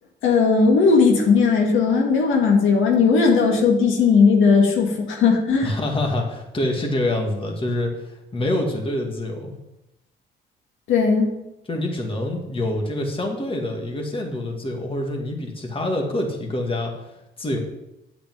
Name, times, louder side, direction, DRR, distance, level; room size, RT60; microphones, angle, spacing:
voice 1, 0.2-5.7 10.9-11.3, left 5 dB, 85° left, 0 dB, 2.0 m, -17 dB
voice 2, 5.6-7.9 8.3-9.5 11.7-16.9 17.4-17.6, left 1 dB, 25° left, 1 dB, 2.1 m, -26 dB
8.8 x 5.1 x 7.7 m, 0.91 s
cardioid pair, 90°, 20 cm